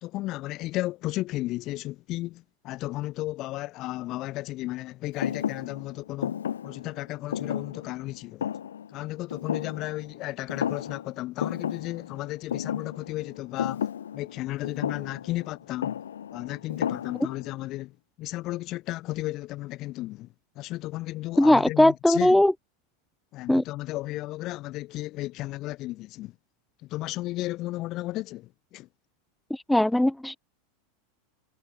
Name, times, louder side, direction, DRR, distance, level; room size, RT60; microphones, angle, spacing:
voice 1, 0.0-6.4 6.6-8.5 8.9-13.9 14.1-16.0 16.3-20.3 20.6-22.4 23.3-26.4 26.8-28.9, left 17 dB, 45° left, 3.6 m, -34 dB
Thump thud, 5.2-10.2 10.5-11.1 11.4-17.5, left 9 dB, 90° left, 2.9 m, -33 dB
voice 2, 21.4-22.5 23.5-23.6 29.5-30.4, left 1 dB, 5° left, 0.4 m, -20 dB
hypercardioid pair, 105°, 0 cm